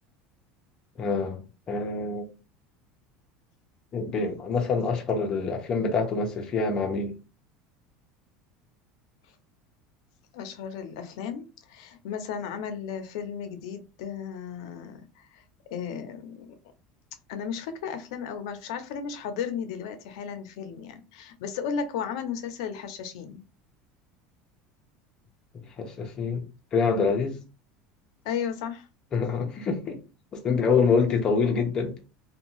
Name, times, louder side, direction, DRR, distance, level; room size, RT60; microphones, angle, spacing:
voice 1, 1.0-2.3 3.9-7.2 25.8-26.5 26.7-27.4 29.1-30.0 30.3-32.0, left 4 dB, 25° left, 0.7 m, -26 dB
voice 2, 10.3-15.4 15.7-16.5 17.3-23.4 28.2-28.9 30.5-30.6 30.8-31.1, left 7 dB, 80° left, 0.6 m, -35 dB
2.6 x 2.2 x 3.0 m
cardioid pair, 160°, 3 cm